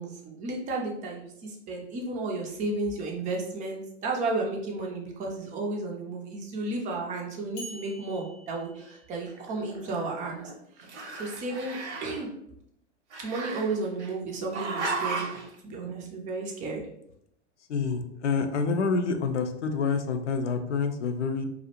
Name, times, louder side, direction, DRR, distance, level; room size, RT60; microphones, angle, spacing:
voice 1, 0.0-10.5 10.8-10.9 11.1-12.3 13.2-16.8, right 3 dB, 25° right, 0 dB, 0.4 m, -33 dB
sound 1, 7.6-9.6, right 1 dB, 20° left, 0.7 m, -46 dB
Growling, 9.3-10.5 10.8-12.2 13.1-14.1 14.5-15.5, right 3 dB, 75° right, 0.7 m, -35 dB
voice 2, 17.7-21.5, left 5 dB, 85° left, 6 dB, 0.5 m, -27 dB
2.4 x 2.0 x 2.8 m, 0.75 s
hypercardioid pair, 100°, 34 cm